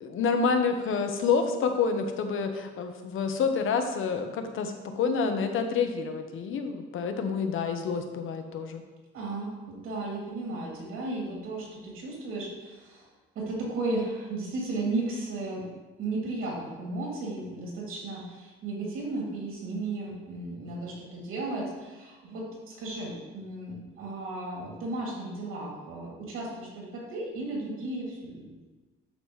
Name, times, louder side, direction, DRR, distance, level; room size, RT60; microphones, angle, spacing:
voice 1, 0.0-8.8, left 5 dB, 70° left, 6 dB, 0.9 m, -28 dB
voice 2, 9.1-13.1 13.3-15.6 16.0-28.6, right 2 dB, 90° right, -3 dB, 2.7 m, -34 dB
11.5 x 5.3 x 3.2 m, 1.2 s
cardioid pair, 135°, 21 cm